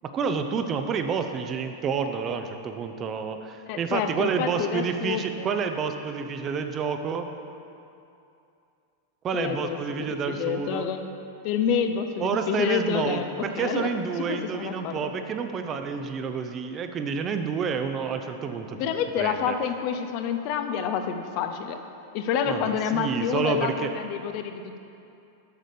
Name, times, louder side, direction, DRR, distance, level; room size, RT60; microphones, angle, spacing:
voice 1, 0.0-7.2 9.2-10.9 12.2-18.8 19.2-19.6 22.5-23.9, right 6 dB, 30° right, 7 dB, 0.5 m, -29 dB
voice 2, 3.7-5.5 9.3-10.1 10.4-11.0 11.4-13.2 13.5-13.9 14.3-15.1 18.8-21.8 22.1-24.8, left 7 dB, 45° left, 7 dB, 0.5 m, -28 dB
8.0 x 6.5 x 5.0 m, 2.6 s
figure-of-eight pair, 90°, 0 cm